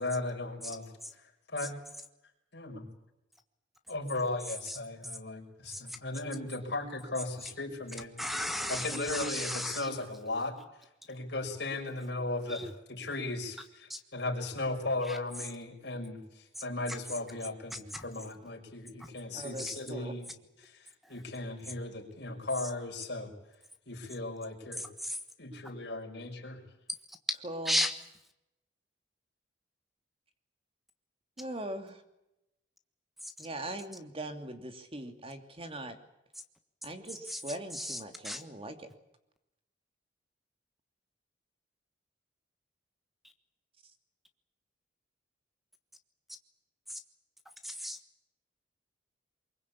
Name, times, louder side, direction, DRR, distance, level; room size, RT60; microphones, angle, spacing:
voice 1, 0.0-1.7 2.5-2.9 3.9-8.1 8.7-10.6 11.1-20.3 20.6-23.3 23.9-24.8 25.4-26.6, left 2 dB, 65° left, 2 dB, 5.9 m, -37 dB
voice 2, 8.2-9.9 12.5-12.7 13.9-14.0 15.1-15.2 17.9-18.0 19.0-19.1 19.6-19.8 21.0-21.1 24.8-25.2 27.1-27.4 27.6-27.9 33.2-33.5 37.3-37.4 37.7-38.0 38.2-38.4 47.6-48.0, equal, ahead, 8 dB, 1.4 m, -34 dB
voice 3, 19.3-20.1 27.4-27.8 31.4-32.0 33.4-36.0 36.8-38.9, right 1 dB, 30° right, 7 dB, 2.8 m, -41 dB
24.0 x 22.5 x 8.6 m, 0.87 s
head